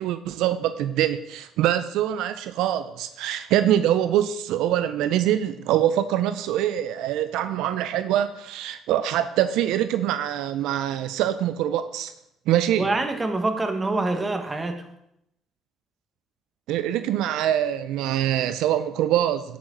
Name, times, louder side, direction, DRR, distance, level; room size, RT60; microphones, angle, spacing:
voice 1, 0.0-12.1 12.5-12.9 16.7-19.6, right 11 dB, 80° right, 0.5 m, -24 dB
voice 2, 12.8-14.8, right 2 dB, 20° right, 1.4 m, -25 dB
10.5 x 8.4 x 3.9 m
cardioid pair, 90°, 0 cm